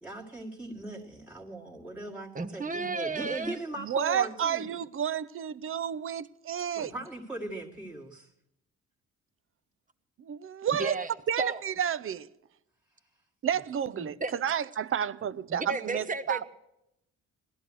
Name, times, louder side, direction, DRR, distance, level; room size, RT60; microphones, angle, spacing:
voice 1, 0.0-4.7 6.7-8.3, right 2 dB, 5° right, 1.9 m, -39 dB
voice 2, 2.3-3.6 10.8-11.1 11.4-11.6 14.0-14.3 15.5-16.4, right 3 dB, 25° right, 1.0 m, -33 dB
voice 3, 3.8-6.9 10.2-11.0 11.3-12.3 13.4-16.4, right 9 dB, 45° right, 0.6 m, -31 dB
17.0 x 12.0 x 6.2 m
cardioid pair, 90°, 30 cm